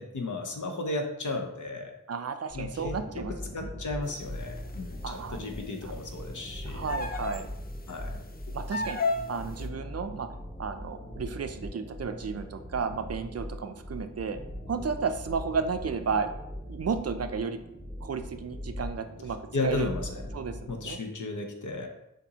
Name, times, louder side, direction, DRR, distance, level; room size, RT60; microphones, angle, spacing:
voice 1, 0.0-2.0 2.5-3.0 3.5-6.9 7.9-8.2 19.5-20.2 20.7-21.9, left 2 dB, 70° left, 4 dB, 0.8 m, -34 dB
voice 2, 2.1-3.7 5.0-5.5 5.8-5.9 6.6-7.5 8.5-9.0 9.3-10.3 10.6-14.4 14.7-16.3 16.7-17.6 18.0-19.4 19.6-19.9 20.3-21.0, right 5 dB, 50° right, 8 dB, 0.4 m, -33 dB
sound 1, 2.5-20.9, left 1 dB, 15° left, 1.1 m, -40 dB
sound 2, 4.4-4.8 6.9-7.5 7.9-8.0 8.7-9.4, left 3 dB, 30° left, 0.5 m, -31 dB
6.8 x 2.7 x 2.8 m, 0.84 s
wide cardioid pair, 50°, 31 cm